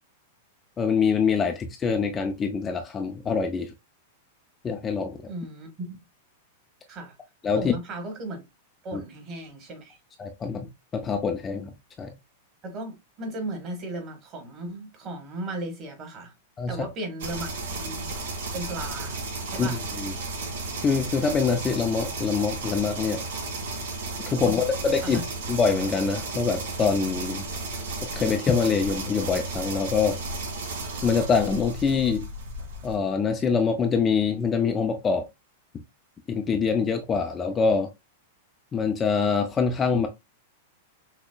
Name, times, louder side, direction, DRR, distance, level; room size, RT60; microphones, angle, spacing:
voice 1, 0.8-3.7 4.6-5.2 7.4-7.6 8.9-9.0 10.2-11.7 12.0-12.1 16.6-16.8 19.6-20.1 20.8-23.2 24.3-25.2 25.5-27.4 28.0-30.2 31.0-32.3 32.8-35.3 36.3-37.9 38.7-40.1, left 5 dB, 15° left, 0.3 m, -25 dB
voice 2, 5.3-6.0 6.9-7.1 7.5-8.4 8.8-10.0 12.6-16.3 16.7-18.1 18.5-19.8 24.4-24.5 25.0-25.2, right 2 dB, 30° right, 1.4 m, -36 dB
sound 1, 17.2-33.0, right 2 dB, 75° right, 2.0 m, -34 dB
5.9 x 2.0 x 2.2 m
supercardioid pair, 155°, 0 cm